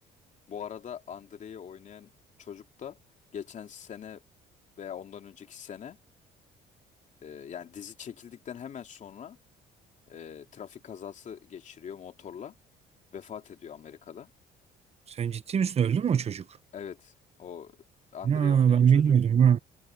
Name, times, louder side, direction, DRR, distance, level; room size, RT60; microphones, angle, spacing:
voice 1, 0.5-2.1 2.4-3.0 3.3-4.2 4.8-6.0 7.2-9.4 10.1-12.5 13.1-14.3 16.7-17.1 17.4-17.8 18.1-19.2, left 8 dB, 45° left, 2.8 m, -42 dB
voice 2, 15.1-16.4 18.2-19.6, right 8 dB, 40° right, 1.0 m, -22 dB
cardioid pair, 110°, 17 cm